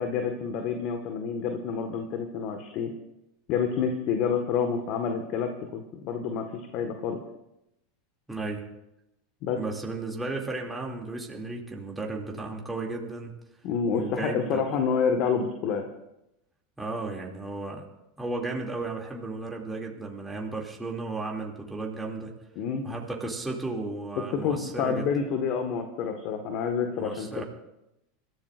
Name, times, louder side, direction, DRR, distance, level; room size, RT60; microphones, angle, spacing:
voice 1, 0.0-2.9 3.5-7.2 9.4-9.6 13.6-15.9 22.5-22.8 24.2-27.4, left 6 dB, 50° left, 5 dB, 1.7 m, -28 dB
voice 2, 8.3-8.7 9.6-13.3 13.9-14.6 16.8-17.9 18.2-22.3 22.8-25.1 27.0-27.4, right 3 dB, 10° right, -1 dB, 2.7 m, -34 dB
29.5 x 14.5 x 2.6 m, 0.88 s
figure-of-eight pair, 85°, 0 cm